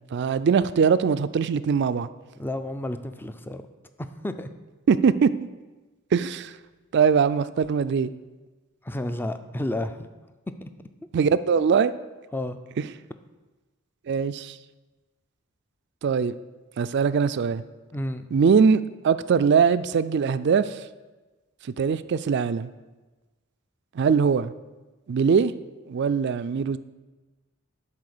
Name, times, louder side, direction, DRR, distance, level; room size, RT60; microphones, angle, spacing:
voice 1, 0.1-2.1 4.9-5.5 6.1-6.5 6.9-8.1 11.1-11.9 12.8-12.9 14.1-14.6 16.0-16.3 16.8-17.6 18.3-20.8 21.8-22.7 23.9-24.5 25.1-25.5 25.9-26.8, right 6 dB, 55° right, 14 dB, 0.3 m, -21 dB
voice 2, 2.4-3.6 4.0-4.5 8.8-10.0 12.3-12.6 17.9-18.3, left 1 dB, 10° left, 9 dB, 0.4 m, -31 dB
11.0 x 4.2 x 6.6 m, 1.2 s
head